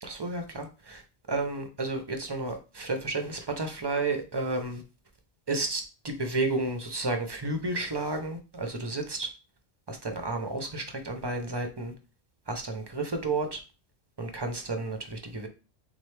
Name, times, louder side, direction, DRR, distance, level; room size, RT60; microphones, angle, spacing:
voice 1, 0.0-1.0 1.3-4.8 5.5-9.3 9.9-11.9 12.5-13.6 14.2-15.5, right 2 dB, 35° right, 5 dB, 0.4 m, -32 dB
3.7 x 3.1 x 3.2 m, 0.32 s
omnidirectional pair, 1.1 m